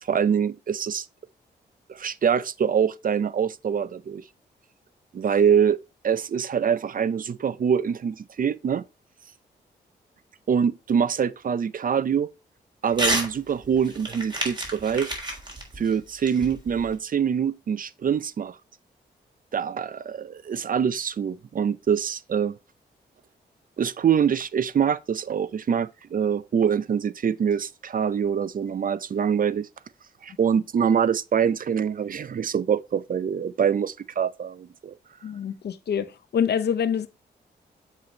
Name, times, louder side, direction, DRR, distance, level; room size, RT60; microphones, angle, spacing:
voice 1, 0.1-1.0 1.9-4.2 5.1-5.8 6.0-8.8 10.5-12.3 12.8-15.1 15.8-18.6 19.5-22.5 23.8-29.7 30.2-34.9, right 7 dB, 50° right, 0.5 m, -24 dB
Crumpling crinkling / Tearing, 12.9-13.3 13.6-17.0, right 1 dB, 25° right, 3.6 m, -29 dB
voice 2, 35.2-37.1, left 8 dB, 65° left, 0.8 m, -26 dB
7.3 x 3.9 x 4.3 m
cardioid pair, 55°, 18 cm